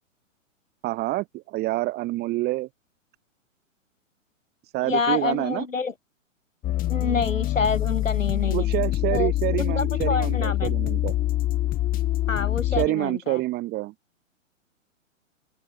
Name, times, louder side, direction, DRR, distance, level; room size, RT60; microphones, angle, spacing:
voice 1, 0.8-2.7 4.7-5.7 8.4-11.1 12.7-13.9, right 18 dB, 25° right, 4.1 m, -27 dB
voice 2, 4.8-5.9 6.9-8.7 9.1-9.3 9.6-10.7 12.3-13.4, left 4 dB, 75° left, 4.4 m, -27 dB
sound 1, 6.6-12.9, left 14 dB, 20° left, 4.3 m, -25 dB
open air
figure-of-eight pair, 115°, 39 cm